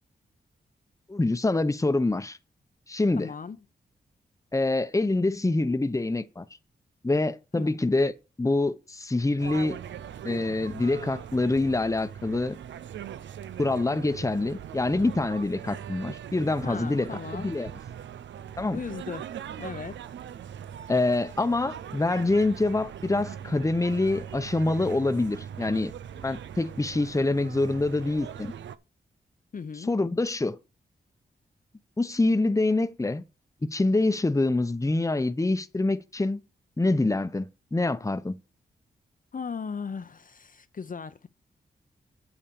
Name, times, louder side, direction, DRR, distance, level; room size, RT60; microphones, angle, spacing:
voice 1, 1.1-2.4 2.9-3.3 4.5-6.4 7.0-8.1 8.4-9.8 10.2-12.6 13.6-17.7 18.6-18.8 20.9-25.9 26.2-28.5 29.8-30.6 32.0-33.2 33.6-36.4 36.8-38.4, left 2 dB, 15° left, 0.8 m, -26 dB
voice 2, 3.2-3.6 7.5-7.7 16.6-17.5 18.7-19.3 19.6-20.0 29.5-29.9 39.3-41.3, left 5 dB, 50° left, 0.7 m, -37 dB
sound 1, 9.4-28.8, right 9 dB, 85° right, 0.6 m, -41 dB
8.6 x 4.1 x 7.0 m
cardioid pair, 45°, 19 cm